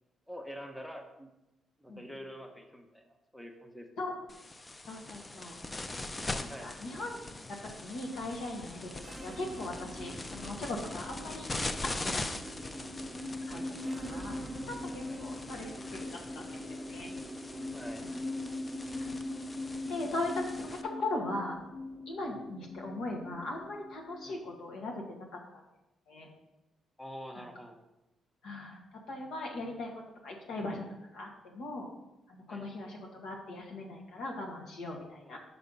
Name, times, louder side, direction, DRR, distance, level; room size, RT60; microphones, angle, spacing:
voice 1, 0.3-1.3 1.8-3.9 6.1-6.7 10.4-10.6 13.5-14.0 15.0-15.3 17.7-18.1 22.3-22.4 24.2-24.4 27.0-27.8 32.5-32.7 35.2-35.4, equal, 5° left, 4 dB, 0.9 m, -47 dB
sound 1, 4.3-20.8, left 2 dB, 20° left, 0.5 m, -42 dB
voice 2, 4.9-5.6 6.4-8.9 9.2-12.2 12.6-13.1 13.5-13.6 14.1-14.3 14.7-17.1 19.0-19.4 19.9-21.6 22.1-25.6 26.1-26.3 28.4-29.9 30.2-30.8 31.1-31.9 32.3-35.4, left 2 dB, 80° left, 0 dB, 1.5 m, -39 dB
sound 2, 8.9-24.4, left 1 dB, 30° right, 0.9 m, -41 dB
5.6 x 5.5 x 5.3 m, 0.94 s
cardioid pair, 90°, 0 cm